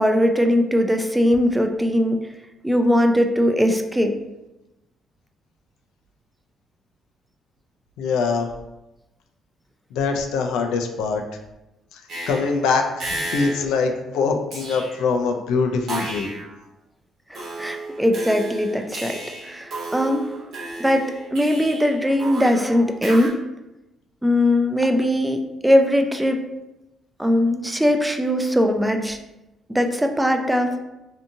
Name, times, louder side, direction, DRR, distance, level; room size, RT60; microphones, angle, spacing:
voice 1, 0.0-2.2 2.6-4.1 17.3-19.2 19.4-20.3 20.8-23.3 24.2-26.4 27.2-29.2 29.7-30.8, equal, 5° right, 4 dB, 0.3 m, -20 dB
voice 2, 8.0-8.5 9.9-11.2 11.9-12.0 12.3-16.3, left 4 dB, 85° left, 4 dB, 0.3 m, -23 dB
sound 1, 12.1-12.6 13.0-13.7 14.5-15.1 15.9-16.5 17.3-23.3, right 2 dB, 70° right, 1.0 m, -33 dB
2.6 x 2.5 x 2.6 m, 0.96 s
cardioid pair, 75°, 0 cm